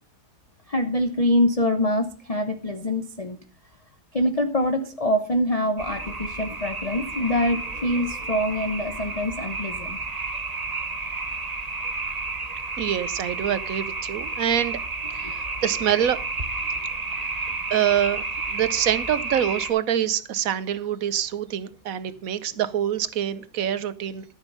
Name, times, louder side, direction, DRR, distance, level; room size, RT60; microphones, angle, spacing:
voice 1, 0.7-3.4 4.1-10.0 15.2-15.3, left 1 dB, 30° left, 7 dB, 0.8 m, -24 dB
sound 1, 5.8-19.7, right 3 dB, 25° right, 1.2 m, -31 dB
voice 2, 12.8-14.8 15.1-16.2 17.7-18.2 18.5-24.3, right 10 dB, 60° right, 15 dB, 1.1 m, -25 dB
13.5 x 7.3 x 5.5 m, 0.38 s
omnidirectional pair, 1.8 m